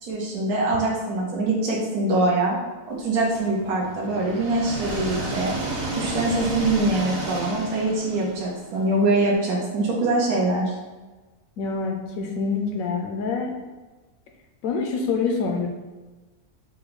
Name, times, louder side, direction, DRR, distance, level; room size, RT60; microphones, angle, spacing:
voice 1, 0.0-2.6 2.9-5.5 5.9-10.7, right 2 dB, 80° right, -4 dB, 1.4 m, -23 dB
sound 1, 3.4-9.2, right 1 dB, 50° right, 1.2 m, -32 dB
voice 2, 11.6-13.5 14.6-15.7, left 4 dB, 75° left, 2 dB, 1.0 m, -26 dB
5.5 x 2.2 x 3.9 m, 1.2 s
omnidirectional pair, 1.6 m